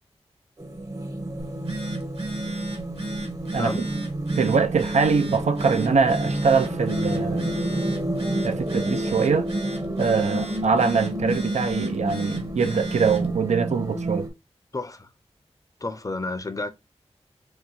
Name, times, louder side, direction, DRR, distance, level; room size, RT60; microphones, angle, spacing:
sound 1, 0.6-14.3, right 1 dB, 30° right, 0.7 m, -30 dB
Telephone, 1.4-13.3, right 1 dB, 60° right, 1.4 m, -34 dB
voice 1, 3.5-3.9 4.3-7.5 8.4-9.5 10.0-14.3, right 5 dB, 80° right, 0.4 m, -23 dB
voice 2, 14.7-15.1 15.8-16.7, left 2 dB, 30° left, 0.6 m, -31 dB
2.9 x 2.2 x 3.9 m
cardioid pair, 55°, 12 cm